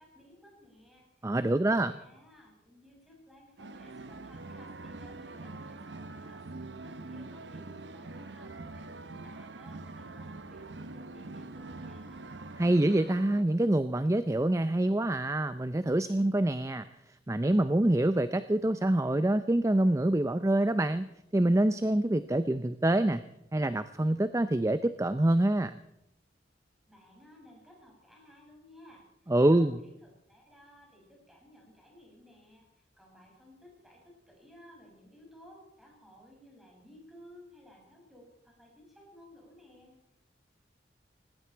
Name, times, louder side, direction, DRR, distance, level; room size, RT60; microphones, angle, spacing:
voice 1, 0.0-12.4 26.9-29.0 29.5-39.9, left 1 dB, ahead, -2 dB, 6.4 m, -57 dB
voice 2, 1.2-2.0 12.6-16.9 17.3-23.2 23.5-25.8 29.3-29.7, right 1 dB, 15° right, 12 dB, 0.5 m, -26 dB
sound 1, 3.6-13.4, right 2 dB, 80° right, 1.0 m, -44 dB
19.0 x 17.0 x 4.5 m, 0.82 s
head